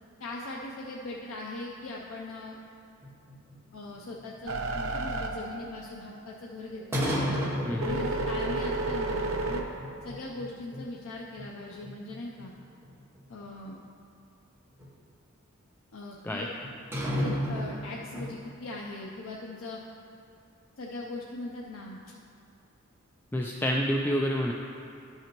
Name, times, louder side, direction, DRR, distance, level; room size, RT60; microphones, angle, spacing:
voice 1, 0.2-2.6 3.7-7.4 7.8-9.6 10.0-12.5 13.3-13.8 15.9-16.5 17.2-19.8 20.8-22.0, left 2 dB, 75° left, -2 dB, 0.6 m, -40 dB
sound 1, 3.0-4.4 6.9-8.6 8.8-8.9 9.5-10.5 10.7-10.8 11.4-11.5 11.8-13.2 14.8-14.9 16.6-18.4, equal, 10° right, 1.0 m, -32 dB
sound 2, 4.5-6.3 6.7-9.6, right 2 dB, 85° right, 0.7 m, -32 dB
voice 2, 7.6-8.1 16.2-16.4 23.3-24.5, equal, 10° left, -1 dB, 0.3 m, -28 dB
12.5 x 5.7 x 3.0 m, 2.5 s
head